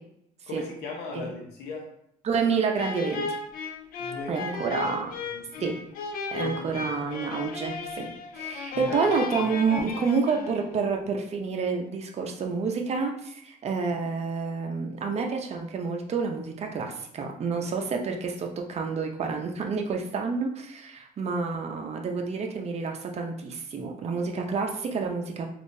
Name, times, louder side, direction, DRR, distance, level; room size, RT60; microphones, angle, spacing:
voice 1, 0.5-1.9 4.0-4.5 5.2-5.6 6.4-6.9 8.7-9.0 9.4-9.5 21.6-21.7, left 3 dB, 85° left, 0 dB, 0.9 m, -38 dB
voice 2, 2.2-3.4 4.3-5.1 5.6-5.7 6.3-8.1 8.3-25.5, right 5 dB, 40° right, 2 dB, 0.6 m, -29 dB
sound 1, 2.8-10.8, left 4 dB, 60° left, 0.4 m, -35 dB
3.5 x 2.6 x 2.7 m, 0.74 s
cardioid pair, 110°, 17 cm